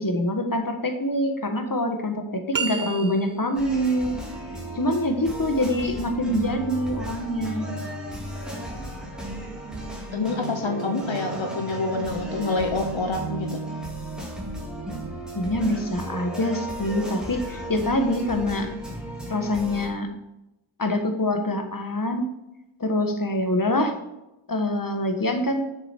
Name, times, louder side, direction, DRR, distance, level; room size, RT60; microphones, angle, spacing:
voice 1, 0.0-4.2 4.7-7.7 15.3-18.7 19.3-20.1 20.8-22.3 22.8-23.9 24.5-25.7, left 1 dB, 45° left, 5 dB, 1.4 m, -25 dB
sound 1, 2.5-3.6, right 6 dB, 45° right, 0.7 m, -30 dB
sound 2, 3.5-19.9, right 1 dB, ahead, 2.7 m, -34 dB
voice 2, 10.1-13.6, left 3 dB, 70° left, 3 dB, 1.1 m, -27 dB
7.6 x 6.7 x 4.4 m, 0.91 s
wide cardioid pair, 50°, 48 cm